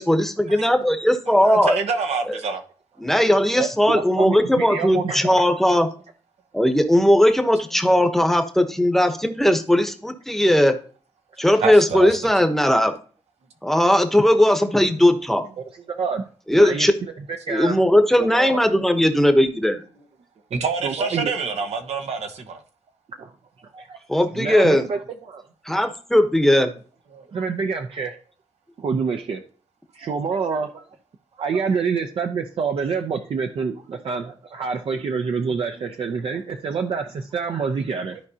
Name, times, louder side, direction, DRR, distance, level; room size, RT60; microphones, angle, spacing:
voice 1, 0.0-1.8 2.3-2.4 3.0-5.9 6.5-10.8 11.4-12.9 13.6-15.4 16.5-16.9 17.5-19.8 24.1-24.8 25.6-26.7, left 1 dB, 5° left, 0.9 m, -18 dB
voice 2, 1.4-2.6 11.6-12.1 20.5-22.6 27.1-27.2, right 5 dB, 90° right, 1.2 m, -26 dB
voice 3, 3.5-5.4 15.9-16.3 16.5-16.9 17.5-17.8 18.2-18.6 20.8-21.3 23.2-23.3 23.7-24.0 24.4-25.4 27.3-28.2 28.8-29.4 29.9-30.9 31.4-38.2, right 5 dB, 60° right, 0.7 m, -27 dB
13.5 x 4.8 x 2.8 m
wide cardioid pair, 135°, 11 cm